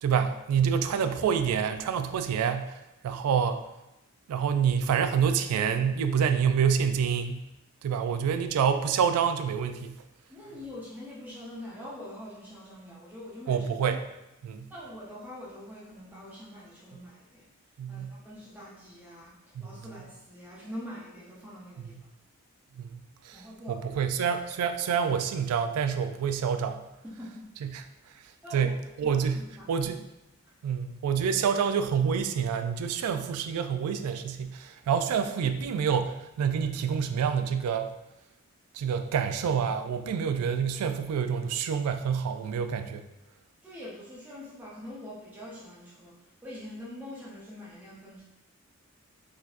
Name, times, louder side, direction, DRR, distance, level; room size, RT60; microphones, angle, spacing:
voice 1, 0.0-2.8 3.0-3.6 4.3-7.4 7.8-10.0 13.5-14.0 14.4-14.7 17.8-18.2 22.8-23.4 23.7-26.9 27.6-27.8 28.5-30.0 30.6-37.9 38.7-43.1, right 7 dB, 85° right, 13 dB, 0.3 m, -27 dB
voice 2, 10.3-13.6 14.7-17.5 17.9-19.3 19.6-21.9 23.3-23.8 27.0-27.7 28.4-28.7 29.0-29.7 30.4-30.5 43.6-46.2 46.4-48.2, left 1 dB, 10° right, -7 dB, 0.6 m, -44 dB
4.0 x 2.7 x 2.4 m, 0.93 s
head